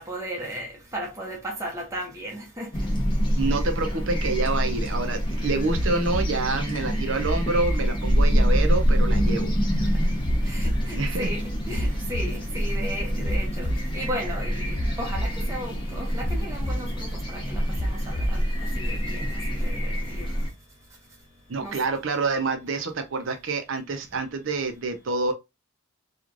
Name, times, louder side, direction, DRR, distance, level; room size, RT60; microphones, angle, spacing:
voice 1, 0.0-2.7 9.8-9.9 10.4-18.4 18.8-20.3 21.6-21.8, right 1 dB, 15° right, 0.7 m, -35 dB
sound 1, 2.7-20.5, equal, 25° left, 0.7 m, -26 dB
voice 2, 3.4-9.5 11.0-11.3 21.5-25.3, right 3 dB, 65° right, 0.6 m, -27 dB
sound 2, 5.7-6.3 7.2-7.8 8.7-9.3 10.2-10.8 11.7-12.3 13.2-13.8 14.7-15.3 16.2-16.8 17.7-18.3 19.2-19.3, equal, 60° left, 0.8 m, -29 dB
3.1 x 2.4 x 2.4 m
head